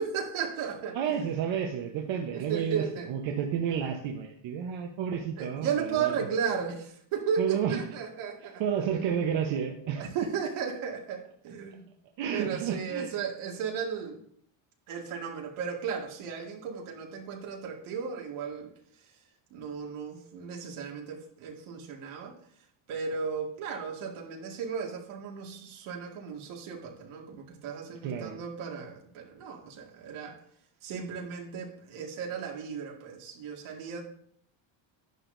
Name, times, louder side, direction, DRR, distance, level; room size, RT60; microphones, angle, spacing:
voice 1, 0.0-1.2 2.3-3.1 5.4-8.6 10.0-11.9 12.3-14.2 14.9-18.7 19.5-22.3 22.9-30.4 30.8-34.0, right 6 dB, 90° right, 0 dB, 2.2 m, -35 dB
voice 2, 0.9-6.3 7.4-7.8 8.4-10.1 12.2-13.1 28.0-28.4, right 8 dB, 70° right, 2 dB, 1.1 m, -31 dB
10.5 x 9.9 x 2.7 m, 0.64 s
cardioid pair, 150°, 48 cm